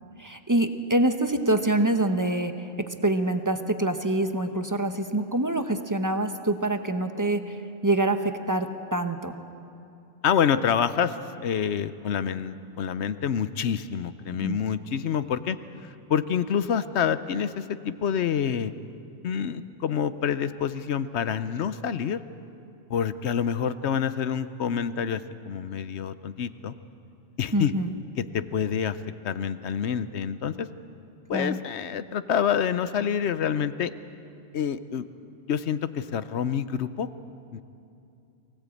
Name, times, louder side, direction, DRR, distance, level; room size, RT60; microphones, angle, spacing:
voice 1, 0.2-9.4 14.4-14.6 27.5-27.9 31.3-31.6, right 1 dB, 15° right, 7 dB, 0.8 m, -26 dB
voice 2, 10.2-15.6 15.8-18.7 19.2-22.2 22.9-26.7 27.4-27.7 28.2-29.0 29.2-30.7 31.3-33.9 34.5-35.0 35.5-37.1 37.5-37.6, left 8 dB, 60° left, 13 dB, 0.9 m, -27 dB
23.5 x 17.0 x 8.4 m, 2.6 s
omnidirectional pair, 1.3 m